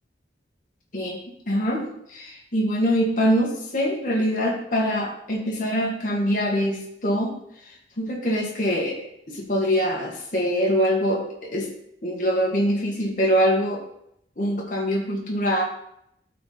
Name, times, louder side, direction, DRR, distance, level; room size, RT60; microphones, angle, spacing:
voice 1, 0.9-7.3 8.0-9.0 9.3-11.7 12.0-13.8 14.4-15.6, equal, 45° left, -3 dB, 1.7 m, -24 dB
13.0 x 4.7 x 4.1 m, 0.75 s
head